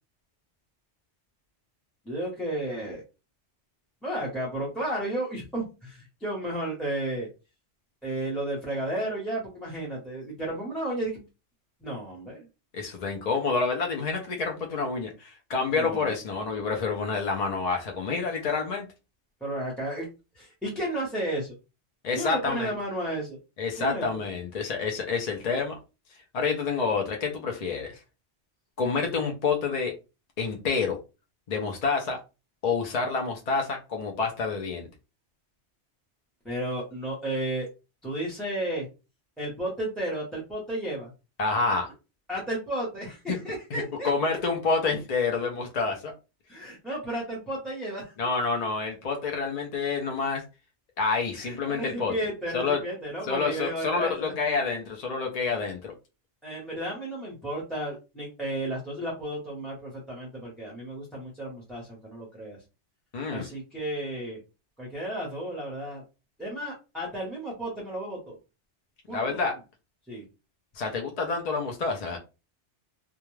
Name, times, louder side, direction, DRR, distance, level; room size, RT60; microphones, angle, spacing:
voice 1, 2.0-3.0 4.0-7.3 8.0-11.2 11.8-12.5 15.7-16.1 19.4-20.1 20.3-21.5 22.1-23.4 23.8-24.2 36.4-37.7 38.0-38.9 39.4-41.1 42.3-44.1 46.5-48.1 51.3-54.3 56.4-62.6 63.3-64.4 64.8-66.0 66.4-68.4 69.1-69.4 70.1-70.2, right 1 dB, ahead, 0.7 m, -33 dB
voice 2, 12.7-18.9 22.0-22.7 23.6-25.8 26.3-28.0 28.8-29.9 30.4-31.0 31.5-32.2 32.6-34.9 41.4-41.9 43.3-43.4 43.7-46.1 48.2-50.4 51.0-52.1 52.5-52.8 53.3-55.9 63.1-63.5 69.1-69.5 70.7-72.2, left 4 dB, 50° left, 0.5 m, -28 dB
2.3 x 2.2 x 3.1 m
omnidirectional pair, 1.2 m